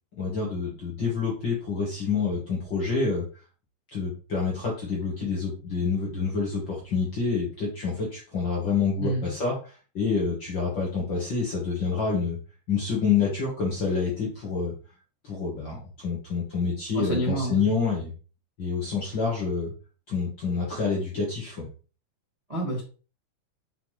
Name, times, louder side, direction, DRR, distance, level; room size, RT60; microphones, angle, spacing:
voice 1, 0.2-3.2 3.9-12.4 12.7-14.7 15.2-18.1 18.6-19.7 20.1-21.7, left 5 dB, 45° left, -4 dB, 1.6 m, -27 dB
voice 2, 9.0-9.3 16.9-17.7 22.5-22.8, right 2 dB, 20° right, -4 dB, 1.0 m, -28 dB
5.7 x 5.6 x 3.2 m, 0.36 s
omnidirectional pair, 4.0 m